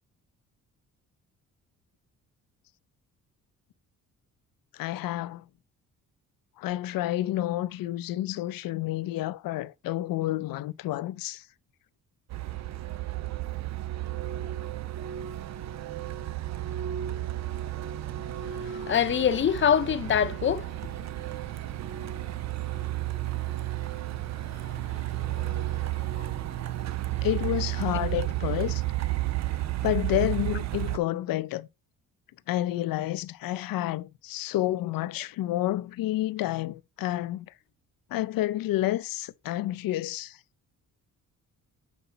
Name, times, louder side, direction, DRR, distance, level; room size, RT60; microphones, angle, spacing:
voice 1, 4.7-5.4 6.6-11.4 27.2-28.8 29.8-31.7 32.5-37.5 38.1-40.4, left 14 dB, 85° left, 0.6 m, -29 dB
Truck, 12.3-31.0, right 15 dB, 55° right, 0.5 m, -32 dB
voice 2, 18.6-20.7 23.3-23.6 24.5-26.6, left 8 dB, 35° left, 0.7 m, -27 dB
7.0 x 5.7 x 4.0 m
cardioid pair, 170°, 33 cm